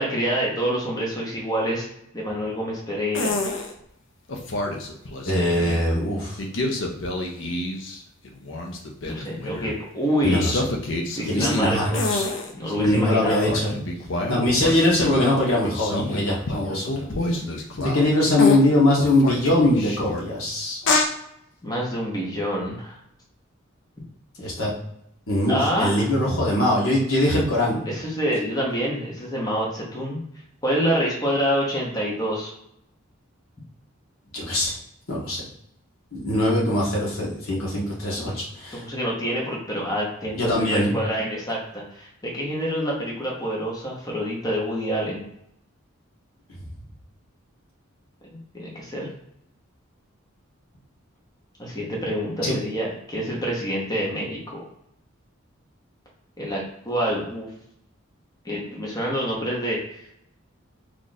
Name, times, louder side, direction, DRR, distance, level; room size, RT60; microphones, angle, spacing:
voice 1, 0.0-1.8 2.1-3.4 9.0-10.5 11.2-12.2 12.5-13.5 21.6-23.0 25.5-26.0 27.9-30.2 30.6-32.5 38.2-38.3 38.7-45.2 48.5-49.1 51.6-54.7 56.4-57.5 58.4-60.0, equal, 15° left, -3 dB, 0.8 m, -27 dB
sound 1, 3.1-3.7 4.3-5.9 6.4-9.7 10.3-12.7 13.2-18.1 18.4-18.6 19.0-20.2 20.8-21.1, left 2 dB, 60° left, 0.6 m, -28 dB
voice 2, 5.2-6.4 10.2-10.6 11.3-12.2 12.7-13.8 14.3-17.1 17.8-20.8 24.4-24.7 25.3-27.8 34.3-34.7 35.1-35.4 36.1-38.8 40.3-40.9 52.4-52.5, left 1 dB, 80° left, -4 dB, 1.3 m, -22 dB
3.1 x 2.5 x 4.0 m, 0.75 s
head